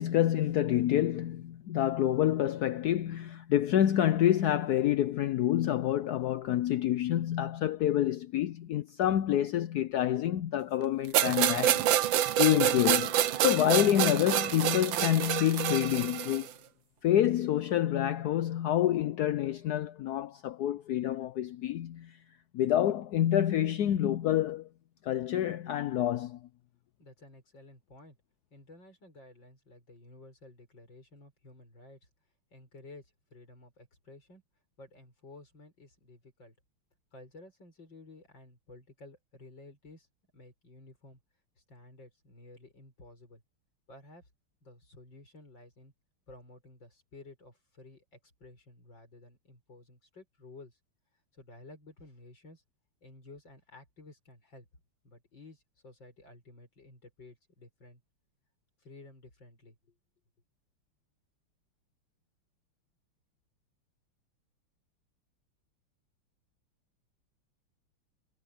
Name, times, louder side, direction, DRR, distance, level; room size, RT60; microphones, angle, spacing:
voice 1, 0.0-11.8 12.4-16.5 17.0-22.2 22.5-24.7 25.0-26.4, left 12 dB, 75° left, 0.9 m, -27 dB
sound 1, 11.1-16.5, right 11 dB, 65° right, 1.5 m, -27 dB
voice 2, 27.0-28.2 28.5-32.0 32.5-34.4 34.8-36.5 37.1-40.1 40.3-41.2 41.7-43.4 43.9-44.3 44.6-45.9 46.3-50.8 51.3-52.6 53.0-54.7 55.0-58.0 58.8-59.9, left 2 dB, 55° left, 7.4 m, -53 dB
omnidirectional pair, 2.4 m